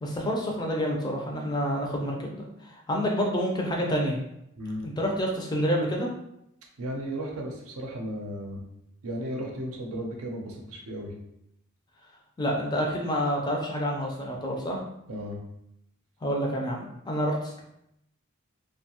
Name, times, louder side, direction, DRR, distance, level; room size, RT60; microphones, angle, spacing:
voice 1, 0.0-4.2 4.8-6.1 12.4-14.8 16.2-17.6, equal, 20° left, -1 dB, 0.4 m, -28 dB
voice 2, 6.8-8.6 9.0-11.1 15.1-15.4, equal, 80° right, 0 dB, 0.6 m, -35 dB
2.7 x 2.2 x 2.8 m, 0.79 s
head